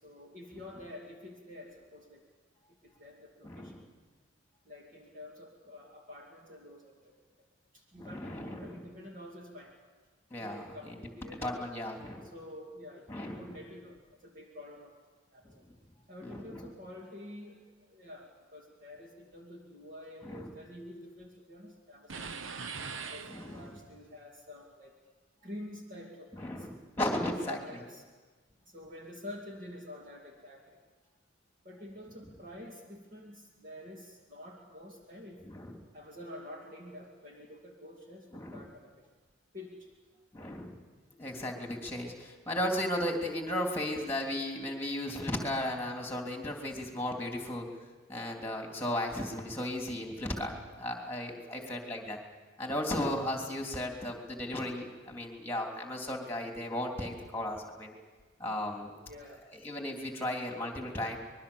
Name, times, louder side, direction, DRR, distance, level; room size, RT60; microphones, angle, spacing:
voice 1, 0.0-2.2 2.8-3.7 4.7-7.0 7.7-9.8 10.4-11.8 12.2-14.9 15.3-15.6 16.1-22.3 23.1-24.9 25.4-26.7 27.5-28.0 28.7-30.8 31.6-35.4 35.9-38.9 39.5-39.9 48.7-48.9 51.5-51.9 59.0-59.4, left 1 dB, 40° right, -1 dB, 2.5 m, -48 dB
voice 2, 3.4-3.8 8.0-8.8 10.3-12.2 13.1-13.6 16.2-16.7 20.2-20.5 23.3-23.7 26.3-27.8 35.4-35.8 38.3-38.7 40.3-40.8 41.2-47.7 48.1-52.2 52.6-57.9 58.4-58.9 59.5-61.2, left 1 dB, 10° left, 1 dB, 3.2 m, -35 dB
sound 1, 22.1-23.9, right 5 dB, 70° right, 1.0 m, -41 dB
25.0 x 22.0 x 7.1 m, 1.4 s
head